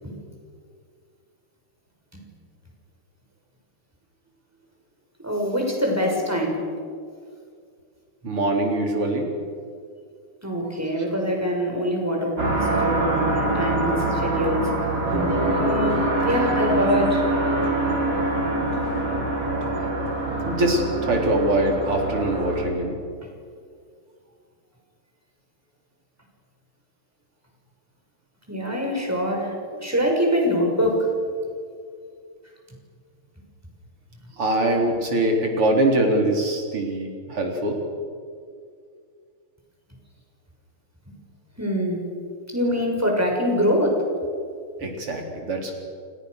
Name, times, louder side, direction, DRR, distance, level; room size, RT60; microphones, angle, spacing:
voice 1, 5.2-6.6 10.4-14.7 15.5-17.2 28.5-29.5 29.8-31.1 41.1-41.2 41.6-42.1 42.5-44.0, equal, 5° right, 0 dB, 6.3 m, -24 dB
voice 2, 8.2-9.3 20.5-23.0 34.4-37.8 44.8-45.7, right 1 dB, 85° right, 1 dB, 4.8 m, -23 dB
sound 1, 12.4-22.6, right 2 dB, 45° right, 5.3 m, -24 dB
29.5 x 29.5 x 6.7 m, 2.2 s
omnidirectional pair, 2.4 m